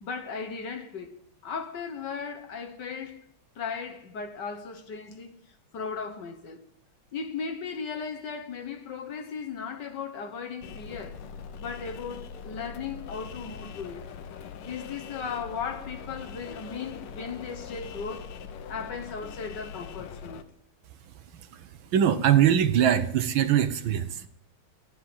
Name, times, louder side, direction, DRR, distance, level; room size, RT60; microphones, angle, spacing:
voice 1, 0.0-1.1 1.4-3.2 3.6-5.3 5.7-6.6 7.1-11.2 11.6-14.0 14.6-18.3 18.7-20.4, left 5 dB, 60° left, 1.7 m, -36 dB
sound 1, 10.6-20.4, left 6 dB, 85° left, 1.8 m, -42 dB
voice 2, 21.9-24.3, right 10 dB, 70° right, 1.6 m, -22 dB
12.5 x 9.9 x 7.8 m
omnidirectional pair, 2.3 m